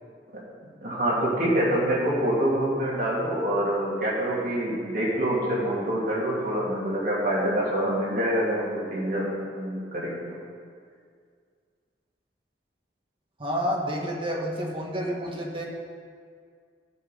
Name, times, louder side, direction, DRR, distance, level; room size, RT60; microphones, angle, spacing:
voice 1, 0.8-10.2, right 1 dB, 55° right, -6 dB, 3.4 m, -26 dB
voice 2, 13.4-15.6, equal, 30° right, -1 dB, 1.6 m, -29 dB
14.5 x 5.7 x 5.6 m, 2.1 s
head